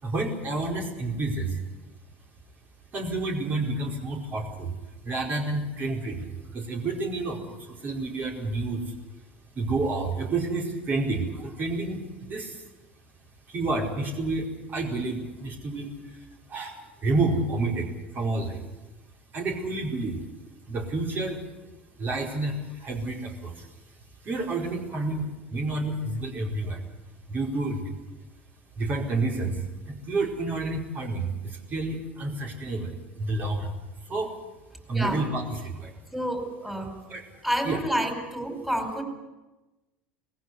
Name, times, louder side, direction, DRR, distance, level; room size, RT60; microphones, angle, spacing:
voice 1, 0.0-1.6 2.9-4.7 5.0-8.8 9.5-12.6 13.5-16.2 16.5-18.6 19.3-20.2 20.7-21.4 22.0-23.7 24.2-26.8 27.3-27.9 28.8-33.7 34.1-34.3 34.9-35.9 37.1-37.2 37.6-37.8, right 2 dB, 40° right, 1 dB, 4.9 m, -29 dB
voice 2, 36.1-36.9 37.4-39.0, equal, 5° right, 4 dB, 5.4 m, -29 dB
20.0 x 15.5 x 9.7 m, 1.1 s
hypercardioid pair, 80°, 5 cm